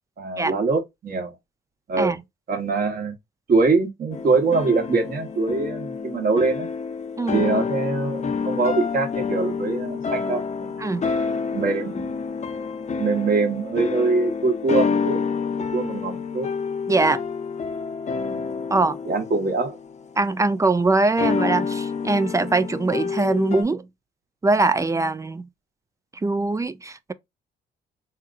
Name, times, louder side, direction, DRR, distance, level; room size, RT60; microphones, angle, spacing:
voice 1, 0.2-1.3 1.9-2.2 2.5-3.1 3.5-6.7 7.3-11.0 11.5-12.1 13.0-15.2 15.7-16.5 18.3-18.5 19.1-19.8, right 3 dB, 45° right, 1.1 m, -23 dB
sound 1, 4.1-20.5 21.2-23.6, left 5 dB, 35° left, 0.6 m, -28 dB
voice 2, 16.9-17.2 18.7-19.0 20.2-23.9 24.4-25.5 26.2-27.1, right 3 dB, 15° right, 0.3 m, -22 dB
3.5 x 2.8 x 2.4 m
cardioid pair, 90°, 20 cm